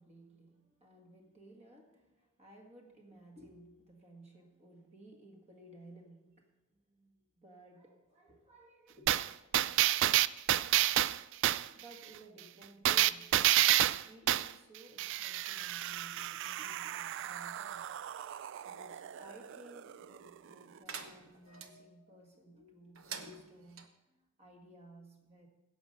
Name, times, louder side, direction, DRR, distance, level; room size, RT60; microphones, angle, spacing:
voice 1, 0.0-9.3 11.5-13.5 13.8-18.1 18.6-25.5, right 1 dB, 35° right, 1 dB, 1.8 m, -57 dB
sound 1, 9.1-11.7 12.9-14.5 15.0-20.2 20.5-20.6, right 13 dB, 65° right, 0.3 m, -30 dB
sound 2, 20.9-21.7 22.9-23.9, right 6 dB, 90° right, 0.9 m, -46 dB
16.5 x 5.5 x 6.7 m, 1.0 s
head